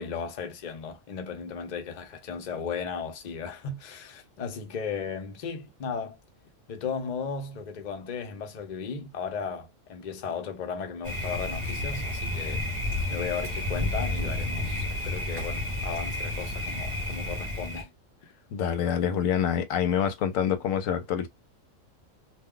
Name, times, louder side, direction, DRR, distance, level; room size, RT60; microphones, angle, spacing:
voice 1, 0.0-6.2 6.7-12.6 13.1-17.9 18.2-18.3, left 6 dB, 40° left, 0.7 m, -35 dB
Thunder, 11.0-17.8, left 1 dB, 25° right, 1.2 m, -31 dB
voice 2, 18.5-21.3, left 8 dB, 80° left, 1.0 m, -26 dB
2.4 x 2.2 x 3.6 m
omnidirectional pair, 1.4 m